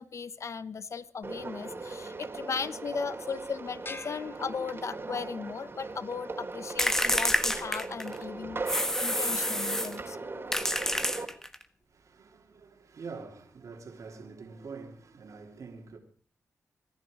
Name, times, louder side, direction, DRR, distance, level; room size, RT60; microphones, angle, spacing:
voice 1, 0.0-10.2, left 5 dB, 60° left, 1.1 m, -37 dB
sound 1, 1.2-11.3, right 3 dB, 40° right, 3.3 m, -39 dB
sound 2, 3.8-5.3, left 2 dB, 40° left, 2.1 m, -46 dB
sound 3, 6.8-8.2 8.7-10.0 10.5-11.6, left 1 dB, 10° left, 1.4 m, -28 dB
voice 2, 11.9-16.0, right 4 dB, 65° right, 3.1 m, -45 dB
24.0 x 10.5 x 5.1 m
supercardioid pair, 45°, 6 cm